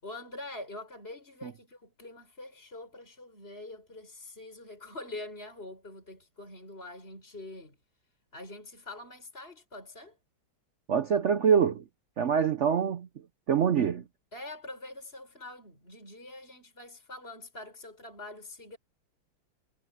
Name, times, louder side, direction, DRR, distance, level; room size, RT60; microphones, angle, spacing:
voice 1, 0.0-7.8 8.3-10.2 14.3-18.8, left 2 dB, 25° left, 7.5 m, -44 dB
voice 2, 10.9-11.8 12.2-13.1 13.5-14.0, right 7 dB, 85° right, 0.6 m, -25 dB
omnidirectional pair, 2.2 m